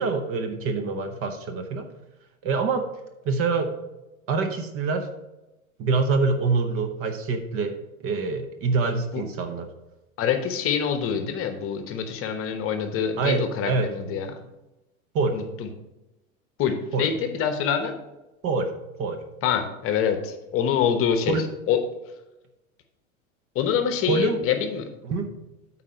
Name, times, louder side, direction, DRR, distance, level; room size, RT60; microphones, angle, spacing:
voice 1, 0.0-1.9 2.4-2.9 3.2-3.7 4.3-5.1 5.8-9.7 13.2-13.9 15.1-15.4 16.9-17.1 18.4-18.7 19.0-19.2 21.3-21.4 24.1-24.4 25.0-25.3, right 4 dB, 30° right, 7 dB, 0.9 m, -25 dB
voice 2, 10.2-14.3 15.3-15.7 16.6-17.9 19.4-21.4 21.7-21.8 23.5-24.9, left 8 dB, 30° left, 7 dB, 1.0 m, -25 dB
8.6 x 4.2 x 6.4 m, 0.99 s
figure-of-eight pair, 90°, 42 cm